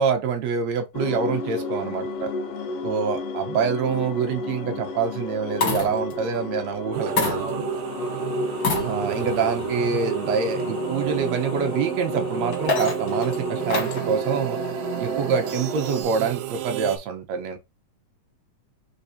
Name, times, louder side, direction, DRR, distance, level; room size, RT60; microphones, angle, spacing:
voice 1, 0.0-2.3 2.8-7.7 8.8-14.6 15.0-17.6, right 6 dB, 65° right, 1.9 m, -26 dB
sound 1, 0.9-16.0, left 3 dB, 65° left, 1.9 m, -32 dB
sound 2, 3.9-4.3 5.3-6.2 7.2-7.9 8.5-9.3 10.0-10.1 12.3-14.1 15.3-15.8, left 4 dB, 45° left, 2.0 m, -28 dB
sound 3, 6.9-17.0, right 14 dB, 90° right, 2.2 m, -31 dB
voice 2, 7.1-7.6 7.9-8.5, right 1 dB, 25° right, 0.7 m, -38 dB
4.6 x 4.2 x 2.7 m
omnidirectional pair, 3.7 m